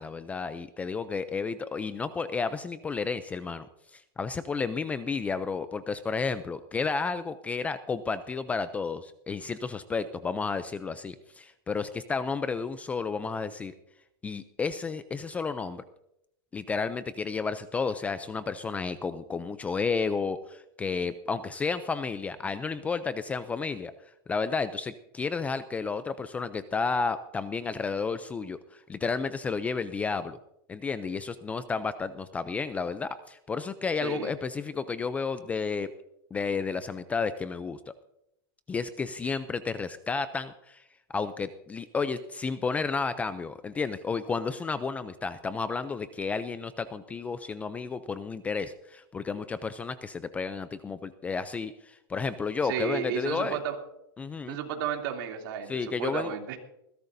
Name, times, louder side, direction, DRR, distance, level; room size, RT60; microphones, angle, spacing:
voice 1, 0.0-3.7 3.9-13.7 14.2-15.8 16.5-23.9 24.3-30.4 30.7-35.9 36.3-37.9 38.7-40.8 41.1-53.6 54.2-54.6 55.7-56.3, left 5 dB, 10° left, 13 dB, 0.4 m, -32 dB
voice 2, 34.0-34.3 52.6-53.8 54.5-56.6, right 8 dB, 55° right, 2 dB, 2.9 m, -33 dB
20.5 x 16.0 x 2.7 m, 0.81 s
supercardioid pair, 150°, 13 cm